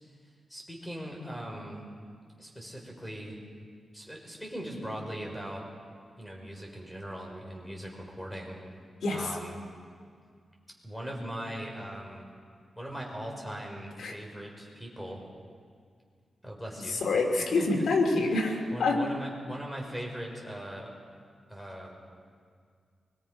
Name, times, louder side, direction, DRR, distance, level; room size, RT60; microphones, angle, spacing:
voice 1, 0.5-1.8 2.4-3.4 3.9-5.6 6.2-8.6 9.1-9.6 10.8-12.3 12.8-15.2 16.4-17.0 17.4-17.9 18.7-20.9 21.5-22.0, equal, 5° left, -1 dB, 5.6 m, -40 dB
voice 2, 16.9-19.0, left 3 dB, 80° left, 0 dB, 3.0 m, -27 dB
23.5 x 23.0 x 5.6 m, 2.1 s
cardioid pair, 85°, 0 cm